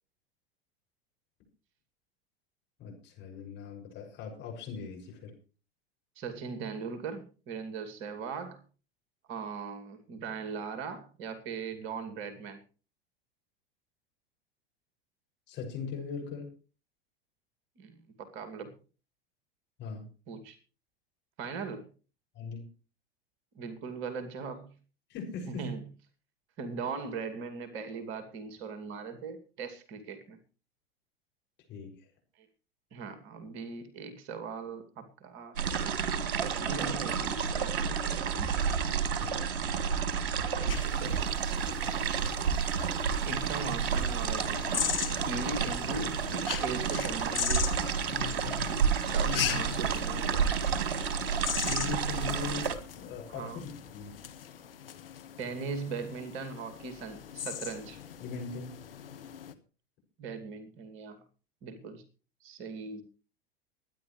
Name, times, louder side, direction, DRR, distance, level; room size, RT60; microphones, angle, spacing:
voice 1, 2.8-5.3 15.5-16.5 19.8-20.0 22.3-22.7 25.1-25.8 31.7-32.0 39.2-39.5 51.6-52.7 52.9-54.1 58.2-58.8, left 5 dB, 35° left, 1 dB, 6.4 m, -40 dB
voice 2, 6.2-8.6 9.3-12.6 17.8-18.7 20.3-20.6 21.4-21.9 23.5-24.7 25.5-25.9 26.6-30.4 32.4-32.5 32.9-35.5 36.3-38.5 40.6-41.3 42.9-44.9 45.3-47.8 49.1-50.7 53.3-53.6 55.4-58.0 60.2-61.2 61.6-62.0 62.4-63.0, right 5 dB, 40° right, 8 dB, 2.4 m, -40 dB
sound 1, 35.6-52.8, right 6 dB, 60° right, 2.0 m, -30 dB
sound 2, 40.7-59.5, left 9 dB, 65° left, 1.5 m, -39 dB
23.5 x 10.5 x 3.2 m, 0.36 s
figure-of-eight pair, 85°, 31 cm